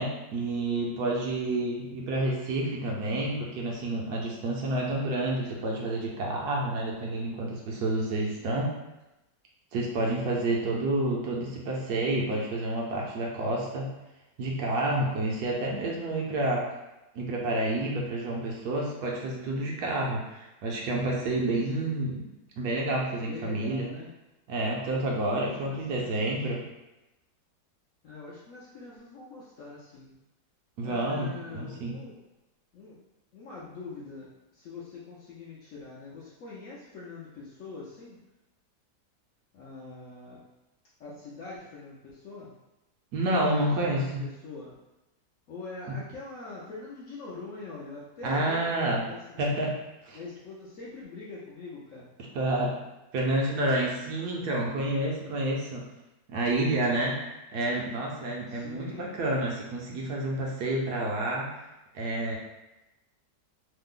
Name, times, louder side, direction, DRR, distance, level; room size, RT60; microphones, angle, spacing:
voice 1, 0.0-8.7 9.7-13.9 14.4-16.6 17.1-22.2 22.6-23.9 24.5-26.6 30.8-31.9 43.1-44.2 45.9-46.0 48.2-49.1 49.4-49.7 50.0-50.2 52.3-52.7 53.1-55.8 56.3-57.2 57.5-61.7 61.9-62.4, right 1 dB, 70° right, -2 dB, 1.1 m, -29 dB
voice 2, 1.6-2.0 4.8-5.4 8.4-8.7 21.8-22.2 23.2-24.1 24.9-26.4 28.0-30.2 30.8-32.2 32.7-33.0 33.3-38.2 39.5-40.4 41.0-42.5 43.3-43.4 43.8-44.8 45.5-49.6 50.1-52.1 58.5-59.2, left 3 dB, 70° left, -6 dB, 0.8 m, -44 dB
3.2 x 2.0 x 3.6 m, 0.98 s
omnidirectional pair, 1.9 m